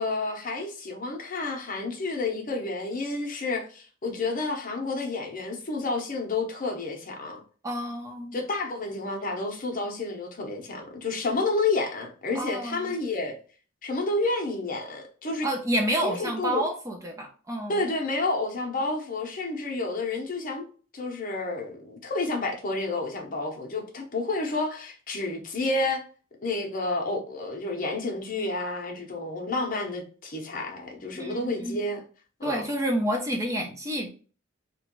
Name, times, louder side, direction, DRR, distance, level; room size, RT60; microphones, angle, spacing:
voice 1, 0.0-7.4 8.3-13.4 13.8-15.5 16.0-16.7 17.7-20.7 20.9-26.0 26.4-32.0 32.4-32.7, left 3 dB, 40° left, 0.6 m, -30 dB
voice 2, 7.6-8.4 12.3-13.0 15.4-17.8 31.1-31.8 32.4-34.1, right 1 dB, 15° right, 0.4 m, -29 dB
2.9 x 2.2 x 2.9 m
head